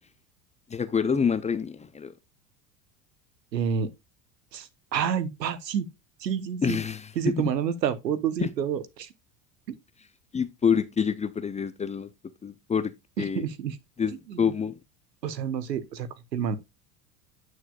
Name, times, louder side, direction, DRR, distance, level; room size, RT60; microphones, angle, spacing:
voice 1, 0.7-2.1 6.6-7.1 8.4-8.5 10.3-12.1 12.4-13.4 14.0-14.8, left 6 dB, 15° left, 0.5 m, -27 dB
voice 2, 3.5-3.9 4.5-5.9 6.2-6.8 7.2-9.1 9.7-9.8 13.2-13.8 14.3-14.4 15.2-16.6, right 8 dB, 85° right, 1.0 m, -29 dB
9.3 x 6.3 x 2.4 m
hypercardioid pair, 85°, 49 cm